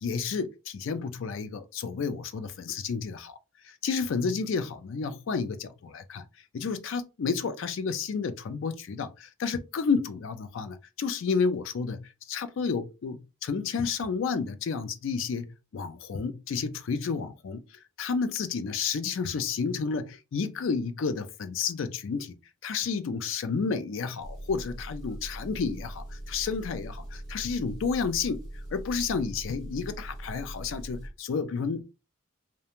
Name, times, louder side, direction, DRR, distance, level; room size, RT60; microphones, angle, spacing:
voice 1, 0.0-3.4 3.6-6.2 6.5-15.5 15.7-17.6 18.0-22.3 22.6-28.4 28.7-31.8, left 5 dB, 65° left, 0.4 m, -31 dB
Engine, 24.2-31.1, right 1 dB, ahead, 1.3 m, -41 dB
2.4 x 2.2 x 2.8 m
head